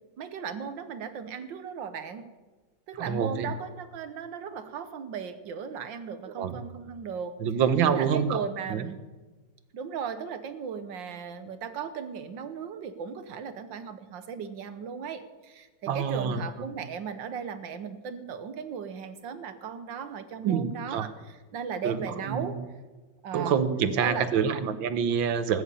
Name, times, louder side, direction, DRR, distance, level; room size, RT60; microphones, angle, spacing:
voice 1, 0.2-2.2 2.9-7.3 7.9-9.0 9.7-22.6 23.2-23.6 24.0-24.3, right 7 dB, 75° right, 10 dB, 1.7 m, -37 dB
voice 2, 3.0-3.5 6.4-6.6 7.4-8.4 8.7-8.9 15.9-16.4 20.4-21.1 21.8-22.7 23.3-25.6, right 7 dB, 90° right, 11 dB, 1.7 m, -27 dB
19.0 x 7.1 x 8.4 m, 1.3 s
omnidirectional pair, 2.1 m